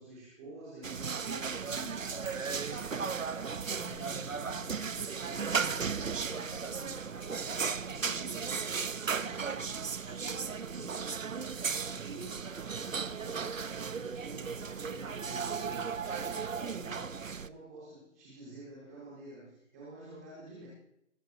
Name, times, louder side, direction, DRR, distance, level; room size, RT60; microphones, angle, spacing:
voice 1, 0.0-20.7, right 1 dB, ahead, -11 dB, 0.8 m, -49 dB
sound 1, 0.8-17.5, right 6 dB, 90° right, 0.8 m, -35 dB
18.5 x 7.1 x 4.5 m, 0.78 s
figure-of-eight pair, 160°, 38 cm